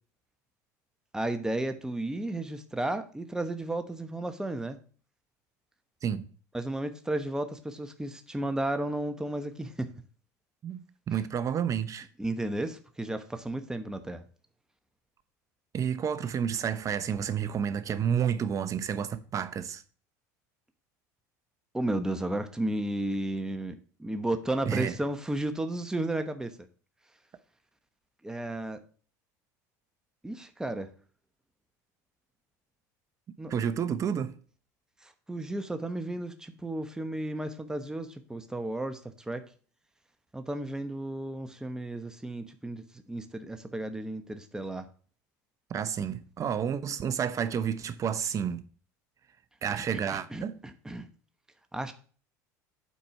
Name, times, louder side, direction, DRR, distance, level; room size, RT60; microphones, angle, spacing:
voice 1, 1.1-4.8 6.5-9.9 12.2-14.2 21.7-23.7 24.0-26.6 28.2-28.8 30.2-30.9 33.4-33.5 35.0-39.4 40.3-44.9 49.7-51.1 51.7-51.9, right 1 dB, 5° right, 1.0 m, -33 dB
voice 2, 10.6-12.1 15.7-19.8 24.6-24.9 33.5-34.4 45.7-48.6 49.6-50.6, right 8 dB, 35° right, 0.8 m, -30 dB
8.4 x 4.4 x 5.7 m
hypercardioid pair, 90°, 9 cm